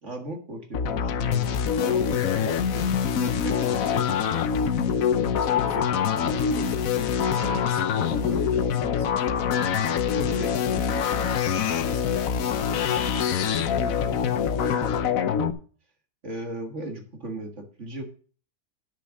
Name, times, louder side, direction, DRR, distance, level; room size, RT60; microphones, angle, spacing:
voice 1, 0.0-4.4 5.7-5.9 8.1-8.4 10.2-11.3 13.5-14.2 14.5-15.2 16.2-18.0, right 1 dB, 45° right, 2.1 m, -38 dB
sound 1, 0.7-15.5, left 7 dB, 60° left, 1.1 m, -25 dB
voice 2, 5.4-5.8 6.2-6.8 7.3-12.1, left 3 dB, 80° left, 2.2 m, -41 dB
10.0 x 6.7 x 6.3 m
omnidirectional pair, 1.8 m